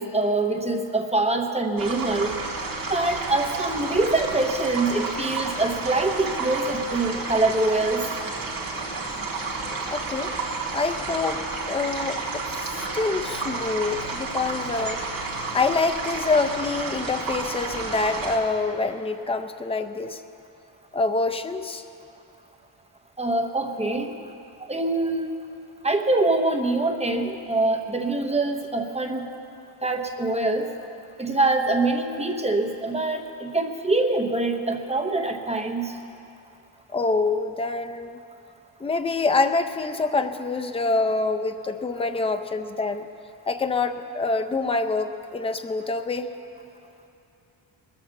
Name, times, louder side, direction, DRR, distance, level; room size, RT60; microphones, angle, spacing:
voice 1, 0.0-2.4 2.9-8.0 23.2-24.1 24.6-25.3 25.8-29.3 29.8-30.7 31.2-35.9, right 2 dB, 15° right, 3 dB, 0.8 m, -24 dB
sound 1, 1.8-18.4, right 3 dB, 45° right, 1.8 m, -31 dB
voice 2, 9.7-10.3 10.7-11.4 11.7-15.0 15.5-20.2 20.9-21.8 36.9-38.2 38.8-43.1 43.5-46.3, left 3 dB, 15° left, 8 dB, 0.4 m, -26 dB
20.5 x 7.4 x 7.1 m, 2.7 s
wide cardioid pair, 160°, 47 cm